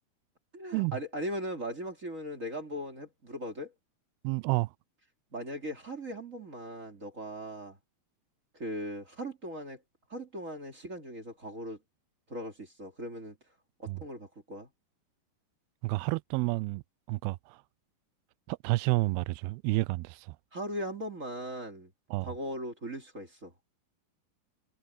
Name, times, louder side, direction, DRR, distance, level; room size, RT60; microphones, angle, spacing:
voice 1, 0.5-3.7 5.3-7.8 8.5-9.8 10.1-11.8 12.3-13.4 13.8-14.7 20.5-21.9 22.2-23.5, equal, 25° right, 2.3 m, -39 dB
voice 2, 4.2-4.7 13.9-14.0 15.8-16.8 17.1-17.6 18.5-20.4 22.1-22.3, right 23 dB, 85° right, 2.3 m, -30 dB
omnidirectional pair, 4.9 m